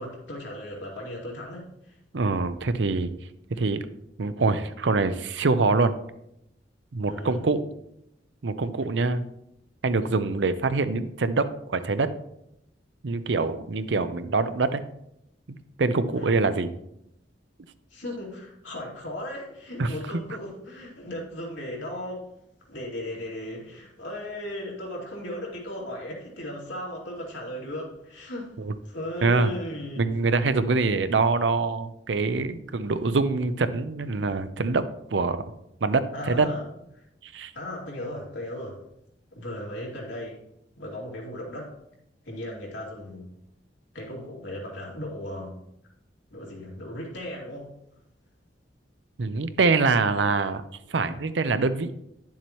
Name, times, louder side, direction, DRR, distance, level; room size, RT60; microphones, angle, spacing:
voice 1, 0.0-2.0 7.0-7.4 16.1-16.4 17.9-22.3 22.7-28.5 28.8-30.0 30.8-30.9 36.1-36.6 37.0-37.1 37.5-38.8 39.3-40.4 40.8-41.8 42.2-43.3 43.9-45.6 46.3-47.8, left 1 dB, 80° left, -3 dB, 2.7 m, -36 dB
voice 2, 2.1-3.1 3.5-3.8 4.2-5.9 6.9-7.6 8.4-9.2 9.8-12.1 13.0-14.8 15.5-16.7 19.8-19.9 28.6-28.7 29.2-29.5 30.0-35.4 35.8-36.5 37.2-37.5 49.2-50.6 50.9-51.9, right 3 dB, 70° right, 12 dB, 0.6 m, -24 dB
10.5 x 7.3 x 3.1 m, 0.80 s
head